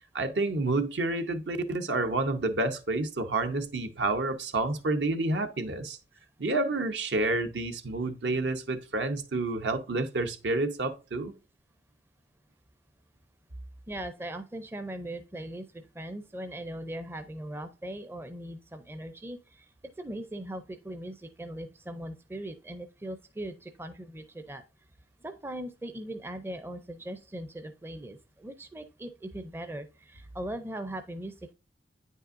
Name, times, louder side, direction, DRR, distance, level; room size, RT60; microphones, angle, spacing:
voice 1, 0.1-6.0 6.4-11.3, right 2 dB, 70° right, 0.9 m, -29 dB
voice 2, 13.9-19.7 20.0-24.6 25.2-31.5, right 1 dB, 15° right, 0.5 m, -39 dB
9.0 x 5.4 x 2.5 m
head